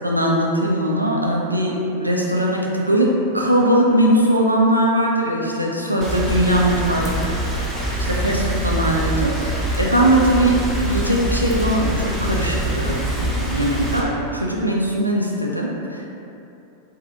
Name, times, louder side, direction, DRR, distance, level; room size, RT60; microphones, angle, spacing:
voice 1, 0.0-7.1 8.0-10.6 10.8-16.1, right 1 dB, 90° right, -2 dB, 0.4 m, -20 dB
Rain, 6.0-14.0, right 1 dB, 5° right, 0.7 m, -24 dB
4.9 x 2.7 x 2.4 m, 2.8 s
figure-of-eight pair, 90°, 0 cm